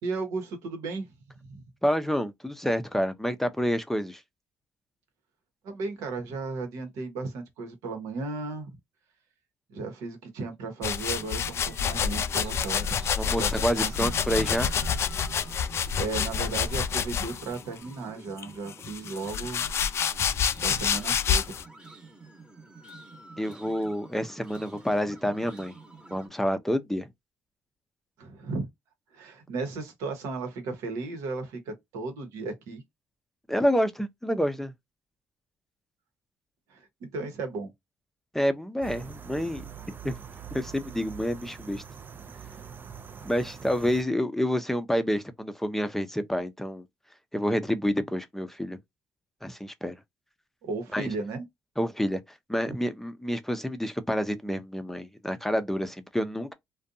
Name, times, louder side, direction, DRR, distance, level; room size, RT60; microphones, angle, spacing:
voice 1, 0.0-1.1 1.5-1.6 5.6-8.7 9.7-13.0 13.4-14.1 15.4-15.6 15.9-19.6 20.6-21.6 28.2-28.7 29.1-32.8 36.7-37.7 50.6-51.4, right 3 dB, 85° right, 1.0 m, -35 dB
voice 2, 1.8-4.2 13.2-14.7 23.4-25.7 26.1-27.1 33.5-34.7 38.3-39.6 40.0-40.1 40.5-41.8 43.2-46.8 47.3-48.8 49.4-49.9 50.9-51.1 51.8-52.2 52.5-56.5, equal, 5° left, 0.5 m, -28 dB
sound 1, 10.8-17.6 18.4-21.6, left 7 dB, 55° left, 0.4 m, -28 dB
sound 2, 11.0-26.3, right 3 dB, 15° right, 1.0 m, -48 dB
sound 3, 38.8-44.0, right 7 dB, 40° right, 0.4 m, -43 dB
2.5 x 2.2 x 2.5 m
supercardioid pair, 65°, 5 cm